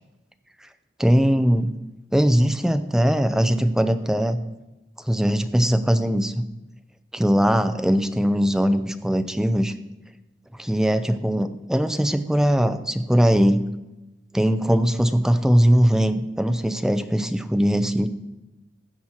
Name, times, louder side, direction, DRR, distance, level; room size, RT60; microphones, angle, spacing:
voice 1, 1.0-1.7 2.1-4.4 5.1-6.4 7.1-9.7 10.6-13.6 14.3-18.1, equal, 5° right, 9 dB, 0.5 m, -20 dB
15.5 x 6.2 x 4.4 m, 1.0 s
head